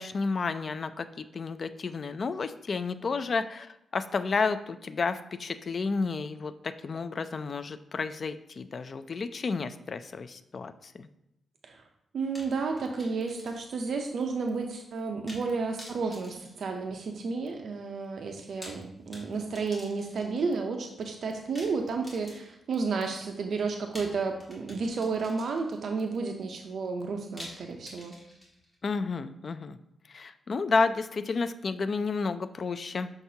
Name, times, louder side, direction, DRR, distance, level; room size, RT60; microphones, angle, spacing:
voice 1, 0.0-11.1 28.8-29.8 30.1-33.1, left 4 dB, 45° left, 12 dB, 0.3 m, -31 dB
voice 2, 12.1-28.1, right 4 dB, 65° right, 3 dB, 0.6 m, -32 dB
sound 1, 12.3-13.9 14.2-14.3 15.3-15.5 15.8-17.3 18.4-20.5 21.5-22.7 23.9-25.9 27.4-28.8, equal, 10° left, 1.7 m, -48 dB
6.5 x 5.8 x 2.7 m, 0.81 s
wide cardioid pair, 130°, 0 cm